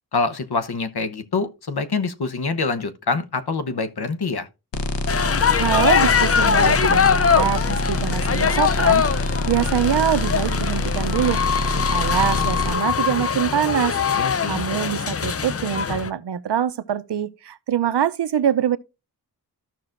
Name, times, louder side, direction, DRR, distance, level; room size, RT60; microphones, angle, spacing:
voice 1, 0.1-4.5 14.2-14.6, left 4 dB, 65° left, 1.0 m, -25 dB
sound 1, 4.7-12.7, left 2 dB, 90° left, 1.2 m, -25 dB
sound 2, 5.1-16.1, left 6 dB, 35° left, 0.5 m, -22 dB
voice 2, 5.6-9.0 9.5-11.4 11.9-13.9 14.4-18.8, right 9 dB, 75° right, 0.7 m, -24 dB
14.5 x 5.9 x 2.5 m
wide cardioid pair, 100°, 42 cm